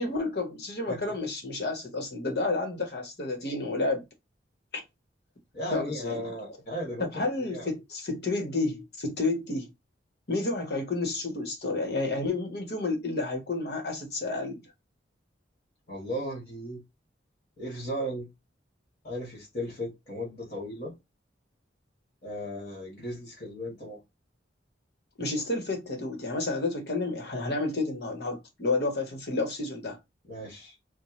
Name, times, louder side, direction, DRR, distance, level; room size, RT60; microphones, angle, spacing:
voice 1, 0.0-4.0 4.7-4.8 5.7-6.3 7.0-9.7 10.3-14.6 25.2-30.0, left 3 dB, 55° left, 1.1 m, -30 dB
voice 2, 5.5-7.7 15.9-16.8 17.6-18.3 19.0-20.9 22.2-24.0 30.2-30.7, equal, 35° left, 1.6 m, -36 dB
4.3 x 2.2 x 3.1 m
head